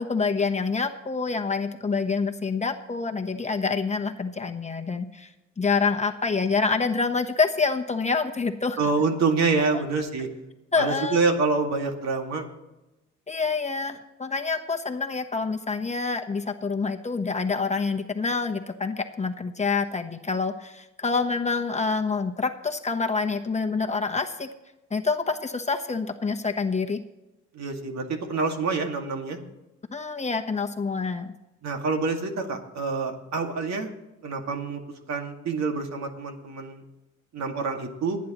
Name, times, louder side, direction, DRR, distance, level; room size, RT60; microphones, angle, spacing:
voice 1, 0.0-5.3 5.6-8.8 10.7-11.2 13.3-24.5 24.9-27.0 29.9-31.3, left 4 dB, 25° left, 4 dB, 1.1 m, -27 dB
voice 2, 8.8-10.3 10.8-12.4 27.5-29.4 31.6-33.9 34.2-34.8 35.1-36.8 37.3-38.2, right 4 dB, 60° right, 3 dB, 2.2 m, -26 dB
28.0 x 9.4 x 3.1 m, 0.99 s
cardioid pair, 90°, 30 cm